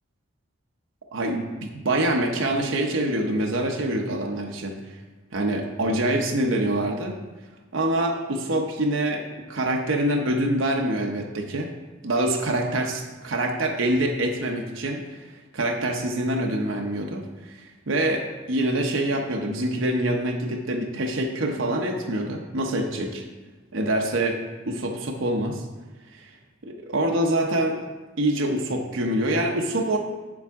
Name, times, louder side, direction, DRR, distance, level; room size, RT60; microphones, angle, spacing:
voice 1, 1.1-5.0 5.3-7.2 7.7-11.7 12.0-23.2 23.7-24.4 24.7-25.6 26.1-26.3 26.6-27.8 28.2-30.0, right 1 dB, 75° right, 1 dB, 0.8 m, -25 dB
7.9 x 7.2 x 3.6 m, 1.2 s
head